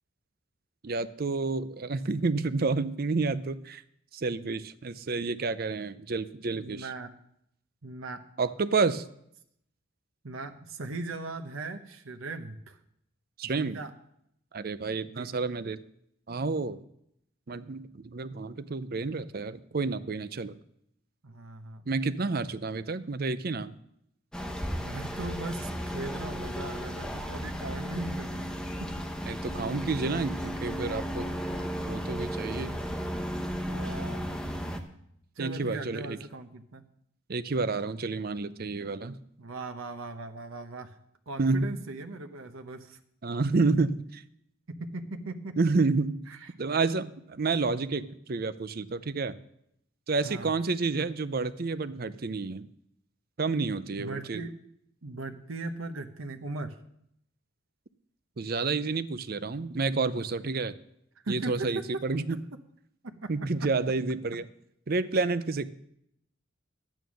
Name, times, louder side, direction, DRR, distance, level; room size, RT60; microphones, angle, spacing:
voice 1, 0.8-3.8 4.1-6.9 8.4-9.1 13.4-13.8 14.5-15.8 16.3-16.8 17.5-20.6 21.9-23.8 29.3-31.2 31.8-32.8 35.4-36.2 37.3-39.2 41.4-41.7 43.2-44.2 45.6-46.1 46.6-49.3 50.1-52.7 53.4-54.4 58.4-60.7 61.3-62.4 63.3-64.5 64.9-65.7, right 3 dB, 45° right, 14 dB, 0.6 m, -29 dB
voice 2, 6.5-7.1 7.8-8.2 10.2-12.8 13.5-13.9 14.9-15.3 21.2-21.9 24.7-28.9 33.7-34.2 35.4-36.8 39.4-40.9 41.3-43.0 44.9-45.5 46.3-46.5 50.2-50.5 54.0-54.5 55.0-56.8 61.2-61.8 63.0-63.3, right 2 dB, 85° right, 7 dB, 1.0 m, -39 dB
sound 1, 24.3-34.8, equal, 5° left, 0.9 m, -34 dB
11.0 x 9.1 x 6.3 m, 0.74 s
head